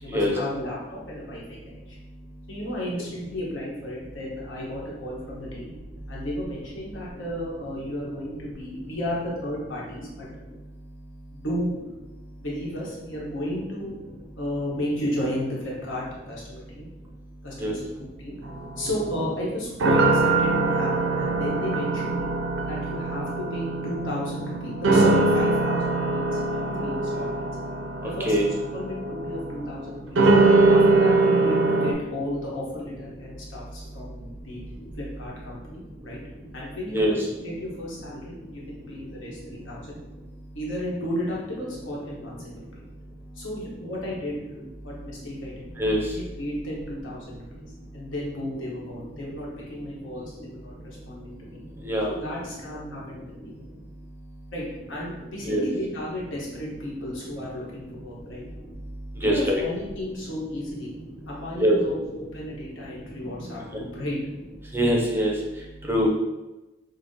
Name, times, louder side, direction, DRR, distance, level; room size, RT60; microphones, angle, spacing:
voice 1, 0.0-2.0 2.5-5.7 6.1-10.4 11.3-11.7 12.4-14.0 14.4-16.9 17.4-18.3 18.8-22.3 22.7-27.5 28.0-30.3 30.7-34.6 35.0-36.2 36.5-40.0 40.5-42.8 43.3-44.4 44.8-45.6 46.1-47.6 47.9-51.6 52.1-53.5 54.5-58.4 59.2-60.9 61.3-64.2, left 1 dB, 90° left, -5 dB, 1.2 m, -33 dB
sound 1, 18.4-31.9, right 3 dB, 85° right, 0.5 m, -22 dB
voice 2, 45.8-46.2 51.8-52.1 53.4-53.5 55.5-55.6 59.2-59.6 61.6-61.8 63.7-63.8 64.7-66.1, equal, 10° right, -1 dB, 0.4 m, -24 dB
5.4 x 2.1 x 2.7 m, 1.0 s
head